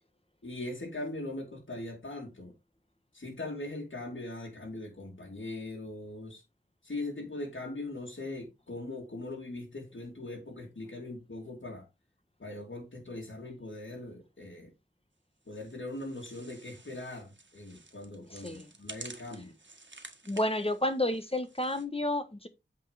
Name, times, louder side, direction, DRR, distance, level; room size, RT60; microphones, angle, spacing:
voice 1, 0.4-2.5 3.1-6.4 6.8-11.9 12.4-14.7 15.5-19.5, left 2 dB, 90° left, 2.4 m, -40 dB
sound 1, 15.5-21.9, right 3 dB, 75° right, 1.7 m, -51 dB
voice 2, 18.3-18.7 20.2-22.5, left 1 dB, 30° left, 1.4 m, -31 dB
8.7 x 4.8 x 5.1 m
wide cardioid pair, 45°, 19 cm